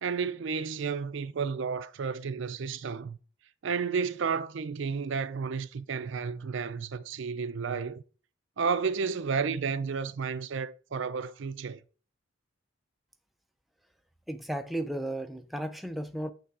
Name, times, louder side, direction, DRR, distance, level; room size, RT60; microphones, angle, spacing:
voice 1, 0.0-3.2 3.6-8.0 8.6-11.8, right 5 dB, 60° right, 0.4 m, -32 dB
voice 2, 14.3-16.3, right 1 dB, ahead, 0.4 m, -34 dB
8.5 x 3.3 x 4.7 m
head